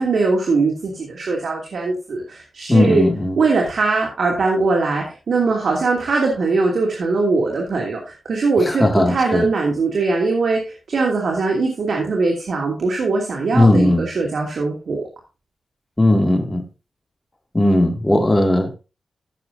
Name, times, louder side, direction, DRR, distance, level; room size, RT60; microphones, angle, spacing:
voice 1, 0.0-3.1 3.4-15.0, right 3 dB, 75° right, 2.8 m, -21 dB
voice 2, 2.7-3.4 8.7-9.4 13.5-14.0 16.0-16.6 17.5-18.7, left 1 dB, 15° left, 2.4 m, -16 dB
16.0 x 7.0 x 2.7 m
cardioid pair, 65°, 0 cm